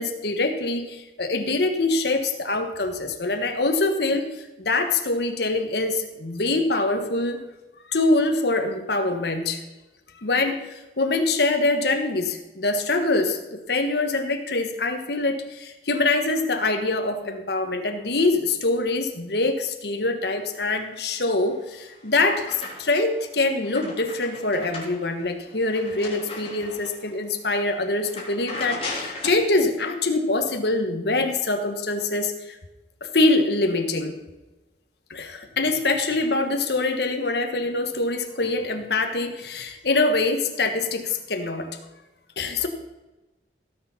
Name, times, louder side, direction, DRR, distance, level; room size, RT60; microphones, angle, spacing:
voice 1, 0.0-7.4 7.9-9.6 10.2-32.6 33.0-34.2 35.1-41.8 42.4-42.7, left 2 dB, 70° left, 5 dB, 1.4 m, -24 dB
sound 1, 21.5-23.1 23.5-27.1 27.5-27.7 28.0-29.5, left 2 dB, 35° left, 3.5 m, -37 dB
17.0 x 7.0 x 5.7 m, 1.1 s
head